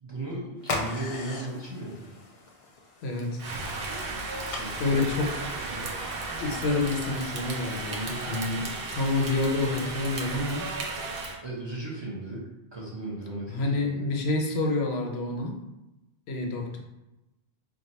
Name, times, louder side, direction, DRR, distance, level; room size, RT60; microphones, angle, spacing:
voice 1, 0.0-2.1 4.5-5.0 5.7-5.9 11.4-14.1, right 2 dB, 30° right, -6 dB, 0.6 m, -36 dB
sound 1, 0.6-5.8, left 2 dB, 55° left, 0.4 m, -39 dB
voice 2, 3.0-3.4 4.8-5.3 5.6-5.8 6.4-10.7 13.5-15.6 16.3-16.8, left 2 dB, 80° left, 1 dB, 0.9 m, -28 dB
Rain, 3.4-11.4, right 3 dB, 65° right, 0.8 m, -34 dB
2.6 x 2.3 x 4.0 m, 0.97 s
omnidirectional pair, 1.1 m